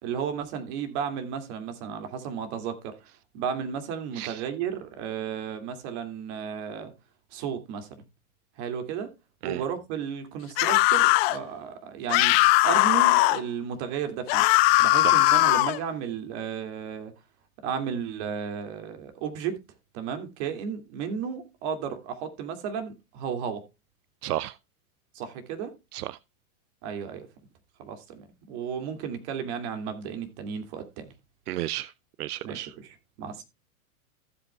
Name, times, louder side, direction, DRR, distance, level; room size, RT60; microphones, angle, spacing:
voice 1, 0.0-6.9 7.3-8.0 8.6-9.1 9.4-12.4 12.6-14.5 14.8-17.1 17.6-19.6 19.9-23.6 25.1-25.7 26.8-27.3 27.8-31.1 32.4-32.7 33.2-33.4, right 7 dB, 45° right, 2.5 m, -33 dB
sound 1, 10.6-11.4 12.1-13.4 14.3-15.8, left 20 dB, 45° left, 0.7 m, -20 dB
voice 2, 24.2-24.6 25.9-26.2 31.5-31.9 32.2-32.7, right 14 dB, 85° right, 0.6 m, -32 dB
15.0 x 8.0 x 2.3 m
hypercardioid pair, 135°, 44 cm